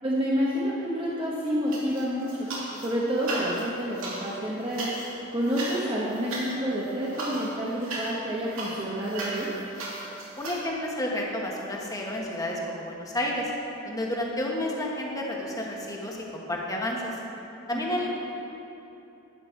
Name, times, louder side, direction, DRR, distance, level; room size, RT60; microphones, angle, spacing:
voice 1, 0.0-2.5 2.8-4.9 5.3-9.5 17.7-18.0, equal, 25° right, -6 dB, 1.1 m, -29 dB
sound 1, 1.7-2.9 3.2-10.6, right 1 dB, 80° right, 2.3 m, -36 dB
sound 2, 9.1-12.6, right 5 dB, 45° right, 2.4 m, -45 dB
voice 2, 10.4-13.5 13.8-17.2 17.7-18.1, left 1 dB, 15° left, -2 dB, 1.3 m, -31 dB
11.5 x 9.0 x 4.5 m, 3.0 s
head